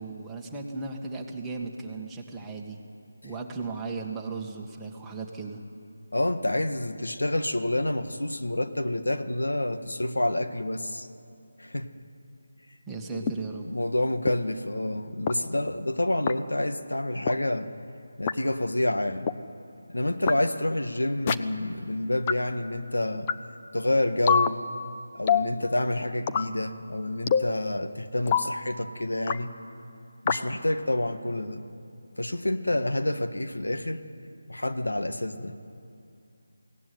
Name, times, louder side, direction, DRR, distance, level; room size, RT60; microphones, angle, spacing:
voice 1, 0.0-2.8 3.2-5.6 12.9-13.7, right 3 dB, 5° right, -2 dB, 1.8 m, -36 dB
voice 2, 6.1-11.1 11.6-11.9 13.1-13.3 13.6-17.7 18.2-19.3 19.9-23.3 23.7-24.6 25.1-29.5 30.2-31.7 32.2-34.0 34.5-35.6, left 1 dB, 85° left, 7 dB, 1.7 m, -28 dB
sound 1, 13.3-13.4 14.3-14.4 15.3-15.4 16.3-16.4 17.3-17.4 18.3-18.4 19.3-19.4 20.3-20.4 21.3-21.4 22.3-22.4 23.3-23.4 24.3-24.5 25.3-25.5 26.3-26.5 27.3-27.5 28.3-28.5 29.3-29.4 30.3-30.4, left 7 dB, 25° left, 0.8 m, -24 dB
23.0 x 17.5 x 9.5 m, 2.5 s
figure-of-eight pair, 160°, 0 cm